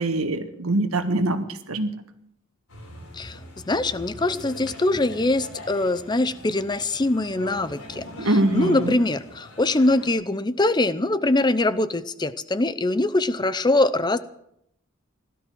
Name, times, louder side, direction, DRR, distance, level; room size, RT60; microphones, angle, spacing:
voice 1, 0.0-1.9 8.2-8.9, right 1 dB, 90° right, 8 dB, 1.6 m, -23 dB
sound 1, 2.7-10.1, left 1 dB, 80° left, 5.5 m, -42 dB
voice 2, 3.7-14.2, left 2 dB, 20° left, 14 dB, 0.6 m, -23 dB
16.5 x 12.5 x 6.3 m, 0.75 s
head